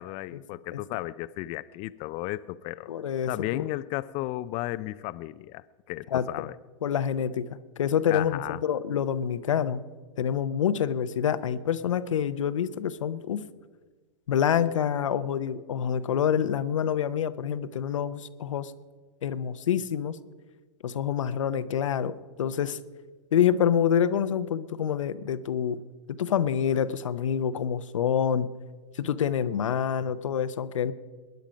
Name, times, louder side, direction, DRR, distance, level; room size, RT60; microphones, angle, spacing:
voice 1, 0.0-2.9 3.3-6.5 8.1-8.6, left 17 dB, 40° left, 0.4 m, -34 dB
voice 2, 2.9-3.6 6.1-6.5 6.8-9.8 10.2-13.5 14.3-18.7 19.2-20.2 20.8-22.8 23.3-25.8 26.1-28.5 29.0-30.9, left 8 dB, 90° left, 0.7 m, -27 dB
20.0 x 10.5 x 5.1 m
hypercardioid pair, 125°, 16 cm